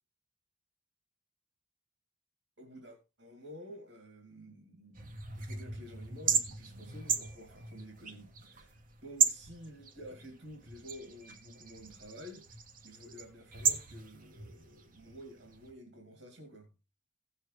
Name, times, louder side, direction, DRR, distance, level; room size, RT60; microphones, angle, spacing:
voice 1, 2.6-16.7, equal, 75° right, 2.5 m, -51 dB
sound 1, 5.0-15.7, right 6 dB, 45° right, 1.2 m, -36 dB
16.5 x 6.7 x 3.3 m
head